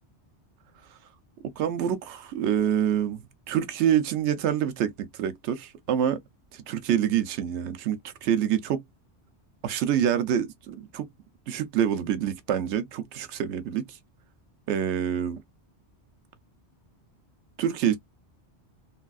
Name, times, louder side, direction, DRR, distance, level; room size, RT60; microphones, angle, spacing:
voice 1, 1.6-6.2 6.5-8.8 9.6-11.1 11.5-13.8 14.7-15.4 17.6-18.0, right 9 dB, 85° right, 0.9 m, -26 dB
3.3 x 2.2 x 2.3 m
omnidirectional pair, 1.1 m